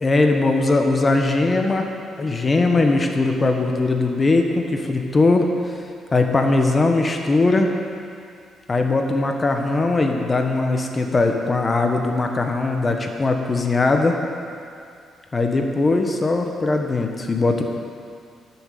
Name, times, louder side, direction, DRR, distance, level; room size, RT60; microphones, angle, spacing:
voice 1, 0.0-1.9 2.2-7.7 8.7-14.1 15.3-17.6, left 3 dB, 30° left, 3 dB, 1.2 m, -20 dB
13.0 x 7.3 x 6.7 m, 2.3 s
cardioid pair, 90°, 0 cm